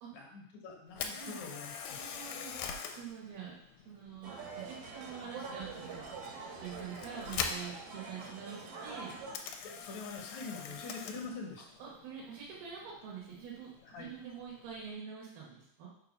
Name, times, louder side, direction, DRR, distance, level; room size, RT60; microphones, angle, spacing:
voice 1, 0.1-2.1 9.6-11.7 13.9-14.1, left 4 dB, 65° left, 0 dB, 2.1 m, -44 dB
Camera, 0.9-14.9, left 6 dB, 80° left, 2.3 m, -45 dB
voice 2, 2.0-3.5 3.8-4.4 4.7-6.0 6.6-9.1 11.8-15.9, right 7 dB, 90° right, -5 dB, 3.1 m, -45 dB
sound 1, 4.2-9.4, right 4 dB, 70° right, 1.4 m, -45 dB
6.6 x 3.2 x 5.1 m, 0.74 s
omnidirectional pair, 4.2 m